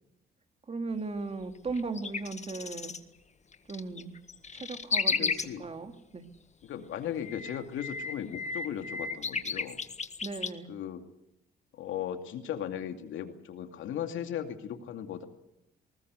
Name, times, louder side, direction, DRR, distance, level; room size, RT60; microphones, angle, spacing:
voice 1, 0.7-2.9 3.7-4.1 4.5-5.3 5.6-6.2 10.2-10.7, right 3 dB, 30° right, 6 dB, 2.6 m, -37 dB
sound 1, 1.7-3.0 3.5-5.5 7.0-10.5, left 5 dB, 35° left, 1.7 m, -33 dB
voice 2, 5.1-5.6 6.6-9.8 10.7-11.0 11.7-15.2, left 9 dB, 80° left, 6 dB, 2.4 m, -37 dB
21.0 x 19.5 x 8.1 m, 0.85 s
cardioid pair, 90°, 20 cm